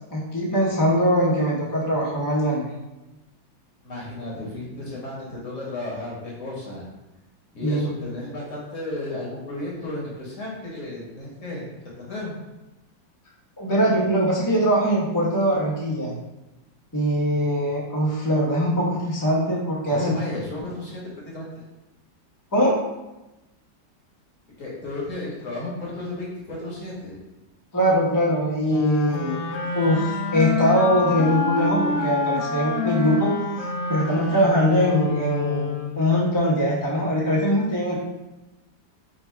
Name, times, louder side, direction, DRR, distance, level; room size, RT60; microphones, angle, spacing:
voice 1, 0.1-2.7 7.6-7.9 13.6-16.1 16.9-20.1 22.5-22.8 27.7-29.4 29.7-33.3 33.6-37.9, equal, 30° left, -6 dB, 0.3 m, -22 dB
voice 2, 3.8-6.9 7.5-12.4 19.9-21.6 24.6-27.2, left 2 dB, 50° left, -4 dB, 1.1 m, -33 dB
sound 1, 28.7-36.2, left 4 dB, 80° left, 0.7 m, -27 dB
4.0 x 2.4 x 4.4 m, 1.0 s
omnidirectional pair, 2.1 m